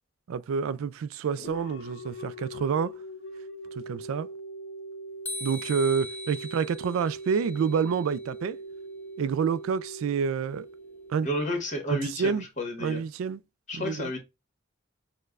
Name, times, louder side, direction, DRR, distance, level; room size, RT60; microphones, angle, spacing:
voice 1, 0.3-2.9 3.8-4.3 5.4-8.6 9.2-10.7 11.1-11.3 11.9-12.4 12.8-13.4 13.7-14.1, right 6 dB, 85° right, 0.3 m, -28 dB
sound 1, 1.4-12.1, right 2 dB, 60° left, 0.5 m, -42 dB
sound 2, 5.3-8.3, left 2 dB, 10° left, 0.3 m, -41 dB
voice 2, 11.2-13.0 13.7-14.2, equal, 35° left, 1.3 m, -31 dB
6.5 x 2.2 x 2.4 m
head